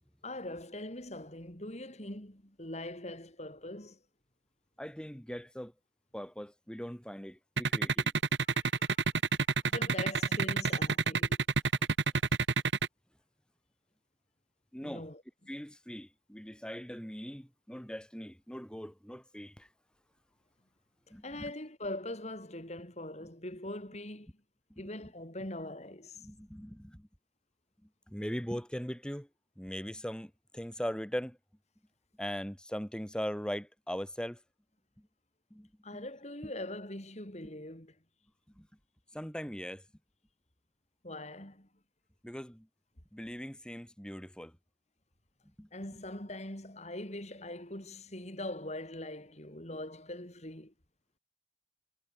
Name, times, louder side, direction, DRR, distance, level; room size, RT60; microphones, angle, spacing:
voice 1, 0.2-4.0 8.4-8.8 9.7-11.4 14.8-15.2 21.2-24.3 24.8-26.2 35.8-38.0 41.0-41.7 45.7-50.7, left 1 dB, 40° left, 5.1 m, -42 dB
voice 2, 4.8-5.7 6.1-8.1 14.7-15.1 15.5-19.7 21.1-21.2 24.7-24.9 26.2-27.1 28.1-29.3 29.6-31.4 32.2-34.4 35.5-36.0 36.4-36.5 38.6-38.7 39.1-39.8 42.2-42.7 43.1-44.5 45.6-45.7, equal, 5° left, 2.0 m, -40 dB
sound 1, 7.6-12.9, right 4 dB, 80° right, 1.5 m, -28 dB
head